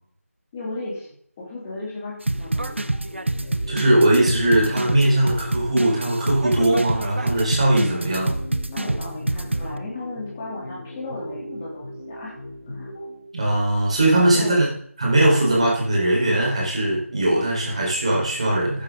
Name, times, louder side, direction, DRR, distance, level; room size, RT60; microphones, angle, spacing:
voice 1, 0.5-2.8 8.7-12.3 12.7-12.9 14.2-14.6, left 2 dB, 10° left, -6 dB, 3.1 m, -35 dB
sound 1, 2.3-13.3, left 1 dB, 35° left, 3.8 m, -38 dB
sound 2, 2.3-9.7, right 2 dB, 55° right, 1.0 m, -26 dB
voice 2, 3.7-8.4 13.3-14.6 15.0-18.8, right 1 dB, 25° right, -3 dB, 4.4 m, -20 dB
15.0 x 10.0 x 3.9 m, 0.63 s
figure-of-eight pair, 170°, 8 cm